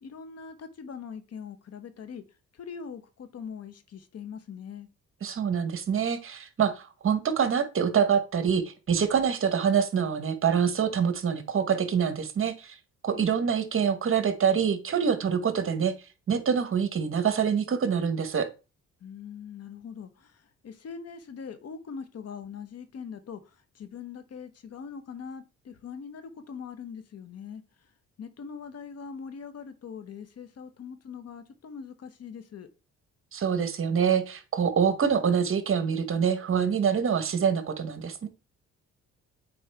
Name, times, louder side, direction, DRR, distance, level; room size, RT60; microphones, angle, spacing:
voice 1, 0.0-2.2 2.5-4.9 13.1-13.5 19.0-27.6 28.2-32.7, left 6 dB, 55° left, 11 dB, 1.1 m, -42 dB
voice 2, 5.2-12.7 13.0-15.9 16.3-18.5 33.3-38.3, right 7 dB, 45° right, 10 dB, 1.1 m, -25 dB
8.6 x 4.2 x 3.4 m, 0.31 s
cardioid pair, 90°, 30 cm